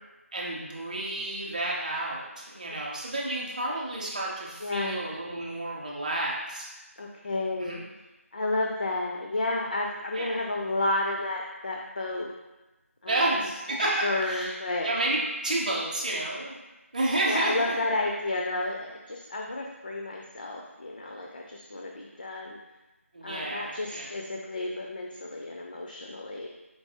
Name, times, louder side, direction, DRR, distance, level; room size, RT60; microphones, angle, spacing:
voice 1, 0.3-6.7 7.6-7.8 10.1-10.4 13.1-13.9 14.2-14.5 14.8-16.6 16.9-17.7 23.1-24.1, right 2 dB, 30° right, -4 dB, 0.6 m, -30 dB
voice 2, 4.6-5.0 7.0-7.8 8.3-12.3 13.0-13.4 13.7-14.9 17.3-22.6 23.2-26.5, left 2 dB, 40° left, 0 dB, 0.3 m, -31 dB
4.6 x 2.7 x 2.8 m, 1.1 s
figure-of-eight pair, 170°, 8 cm